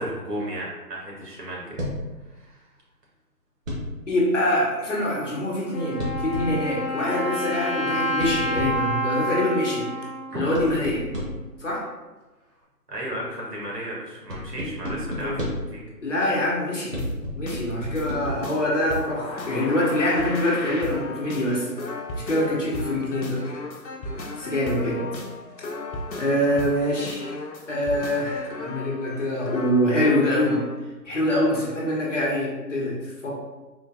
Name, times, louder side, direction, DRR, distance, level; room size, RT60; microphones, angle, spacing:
voice 1, 0.0-1.8 2.2-2.6 10.3-10.4 12.9-15.8, right 1 dB, 70° right, -4 dB, 1.4 m, -34 dB
sound 1, 1.8-2.1 3.6-4.1 6.0-6.7 8.2-9.0 10.5-11.5 14.3-15.8 16.9-18.2, equal, 50° right, 1.0 m, -31 dB
voice 2, 4.1-9.9 10.3-11.0 11.6-11.8 15.2-15.4 16.0-16.9 17.3-21.7 22.1-23.4 24.4-25.1 26.1-27.3 27.7-30.6 31.0-33.4, left 1 dB, 50° left, -4 dB, 0.8 m, -24 dB
Wind instrument woodwind instrument, 5.7-11.4, equal, 25° left, 1.0 m, -29 dB
sound 2, 17.0-30.8, left 2 dB, 85° left, 0.7 m, -35 dB
3.7 x 2.5 x 2.4 m, 1.2 s
figure-of-eight pair, 160°, 50 cm